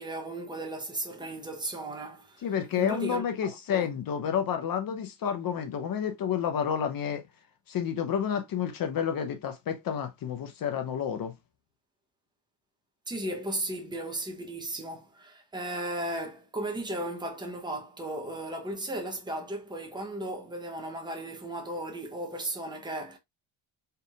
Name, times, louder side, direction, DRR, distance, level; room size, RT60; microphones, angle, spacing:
voice 1, 0.0-2.5 2.7-3.9 13.1-23.2, right 1 dB, 10° right, 0.8 m, -35 dB
voice 2, 2.4-7.2 7.7-11.3, left 8 dB, 45° left, 0.8 m, -30 dB
4.4 x 3.5 x 2.4 m
cardioid pair, 180°, 49 cm